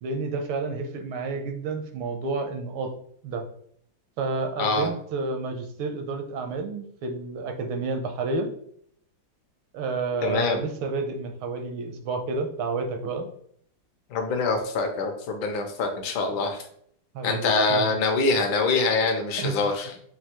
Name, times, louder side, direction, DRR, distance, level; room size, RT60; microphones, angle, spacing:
voice 1, 0.0-2.9 3.2-3.5 4.2-8.5 9.7-13.3 17.1-17.9 19.4-19.6, right 3 dB, 80° right, 5 dB, 1.5 m, -30 dB
voice 2, 10.2-10.6 14.1-16.6 17.2-20.0, left 3 dB, 70° left, 5 dB, 1.5 m, -24 dB
5.6 x 2.6 x 3.0 m, 0.64 s
omnidirectional pair, 2.3 m